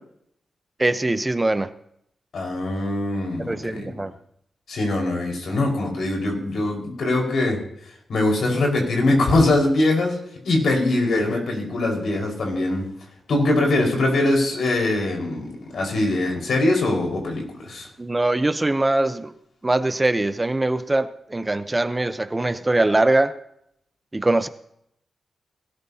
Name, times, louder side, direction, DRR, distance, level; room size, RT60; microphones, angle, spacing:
voice 1, 0.8-1.7 3.5-4.1 18.0-19.3 19.6-23.3 24.1-24.5, right 2 dB, 20° right, 11 dB, 0.8 m, -22 dB
voice 2, 2.3-3.9 4.7-7.6 8.1-10.2 10.4-12.8 13.3-17.9, left 2 dB, 75° left, 0 dB, 4.9 m, -22 dB
20.5 x 13.5 x 2.8 m, 0.73 s
cardioid pair, 80°, 0 cm